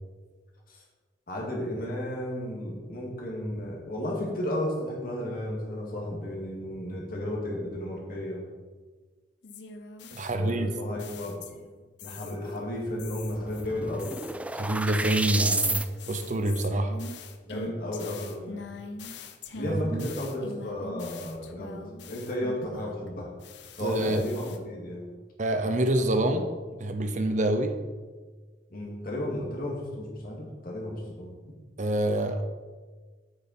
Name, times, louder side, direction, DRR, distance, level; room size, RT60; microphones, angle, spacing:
voice 1, 1.3-8.4 10.4-11.4 12.0-14.2 17.5-18.6 19.5-21.8 22.1-23.3 23.7-25.1 28.7-31.3, left 1 dB, 50° left, -3 dB, 2.3 m, -33 dB
sound 1, 9.4-11.7 12.0-12.6 13.0-23.1 23.4-24.6, left 3 dB, 70° left, 0.7 m, -43 dB
voice 2, 10.1-10.7 14.5-16.9 19.6-20.1 23.8-24.2 25.4-26.5 26.8-27.7 31.8-32.4, right 1 dB, 45° right, 7 dB, 0.6 m, -26 dB
sound 2, 13.0-13.1 13.3-15.9, right 2 dB, 5° right, 0.4 m, -30 dB
8.1 x 6.7 x 4.4 m, 1.4 s
head